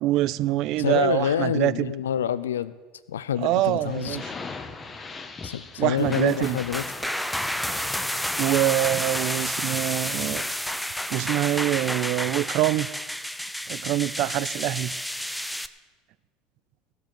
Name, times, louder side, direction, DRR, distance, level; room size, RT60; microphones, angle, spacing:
voice 1, 0.0-1.9 3.4-4.3 5.8-6.6 8.4-10.5 11.1-12.9 13.7-14.9, right 15 dB, 60° right, 19 dB, 0.4 m, -25 dB
voice 2, 0.8-2.7 3.1-4.2 5.4-6.8, left 10 dB, 85° left, 15 dB, 0.5 m, -27 dB
sound 1, 3.8-10.5, left 4 dB, 25° left, 1.2 m, -41 dB
sound 2, 6.0-15.7, equal, ahead, 0.6 m, -30 dB
16.5 x 7.8 x 7.0 m, 1.3 s
hypercardioid pair, 80°, 0 cm